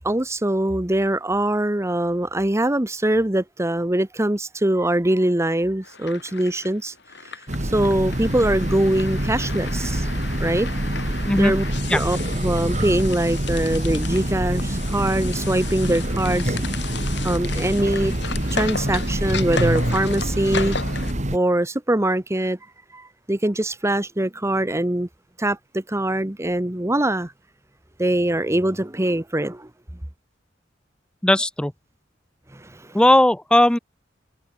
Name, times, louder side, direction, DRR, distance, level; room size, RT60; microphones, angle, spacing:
voice 1, 0.0-6.9 7.2-7.3 7.6-10.1 10.4-10.7 11.4-11.6 11.9-16.6 17.2-18.1 18.5-20.8 21.3-22.6 22.9-25.1 25.4-27.3 28.0-29.7 32.5-33.2, right 1 dB, 15° right, 1.2 m, -23 dB
sound 1, 5.8-21.1, left 5 dB, 65° left, 5.1 m, -35 dB
Train, 7.5-21.4, right 1 dB, 40° right, 2.5 m, -26 dB
voice 2, 31.2-31.7 32.9-33.8, left 1 dB, 5° left, 0.4 m, -17 dB
head